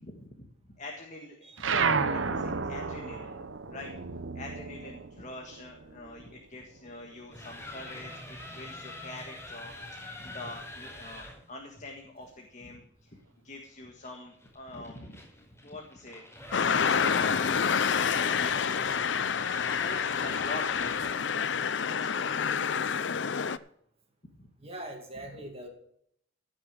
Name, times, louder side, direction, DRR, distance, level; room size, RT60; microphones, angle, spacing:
voice 1, 0.0-3.3 3.7-13.2 13.4-15.2 15.6-16.2 16.8-18.9 19.6-22.8 24.4-24.5, left 2 dB, 40° left, 1 dB, 1.6 m, -45 dB
sound 1, 1.6-6.5 6.8-8.2, right 5 dB, 85° right, 0.9 m, -32 dB
sound 2, 7.1-11.4 14.0-21.2, left 1 dB, 15° left, 5.2 m, -44 dB
sound 3, 16.5-23.6, left 6 dB, 65° left, 0.5 m, -28 dB
voice 2, 24.6-25.7, right 1 dB, 30° right, 3 dB, 2.3 m, -42 dB
15.5 x 6.4 x 6.4 m, 0.69 s
head